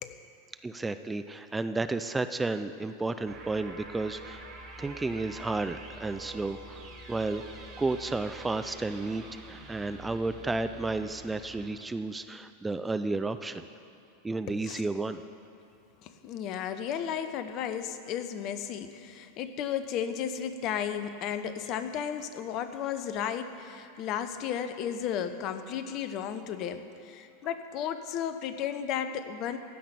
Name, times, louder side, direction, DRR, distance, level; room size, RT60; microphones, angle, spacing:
voice 1, 0.6-4.4 4.8-7.4 7.8-13.6 14.2-15.2, right 3 dB, 10° right, 10 dB, 0.5 m, -32 dB
sound 1, 3.3-11.7, right 2 dB, 40° right, 2.3 m, -46 dB
voice 2, 14.5-14.8 16.0-29.6, left 8 dB, 45° left, 10 dB, 0.9 m, -34 dB
15.5 x 5.9 x 9.9 m, 2.7 s
hypercardioid pair, 90°, 0 cm